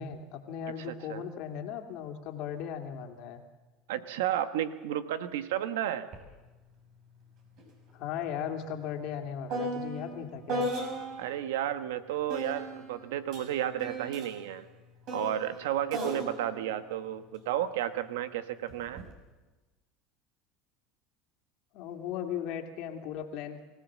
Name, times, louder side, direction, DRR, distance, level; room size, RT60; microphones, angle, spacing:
voice 1, 0.0-3.4 7.9-10.7 21.7-23.6, left 8 dB, 60° left, 4 dB, 2.4 m, -37 dB
voice 2, 0.9-1.2 3.9-6.1 11.2-14.7 15.1-19.1, right 11 dB, 85° right, 11 dB, 1.2 m, -32 dB
sound 1, 6.1-6.3 6.6-11.4 12.3-17.8 18.7-19.1, right 1 dB, 55° right, 6.4 m, -38 dB
23.5 x 16.5 x 7.4 m, 1.2 s
supercardioid pair, 110°, 0 cm